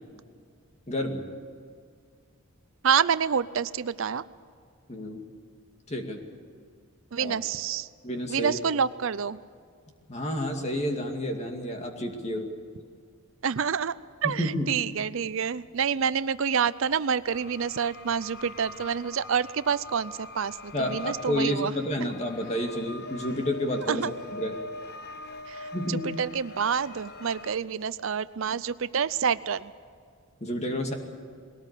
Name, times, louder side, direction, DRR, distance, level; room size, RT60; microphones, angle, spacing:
voice 1, 0.9-1.2 4.9-5.2 5.9-6.2 7.2-7.3 8.0-8.6 10.1-12.5 14.2-14.8 20.7-24.1 24.3-24.6 25.7-26.1 30.4-30.9, equal, 30° left, 3 dB, 2.3 m, -30 dB
voice 2, 2.8-4.2 7.1-7.9 8.3-9.4 13.4-13.9 14.2-21.7 22.0-22.1 23.9-24.1 25.5-29.7, right 7 dB, 65° right, 16 dB, 0.5 m, -28 dB
sound 1, 17.3-27.6, left 2 dB, 45° left, 0.9 m, -43 dB
21.5 x 18.0 x 8.4 m, 2.1 s
head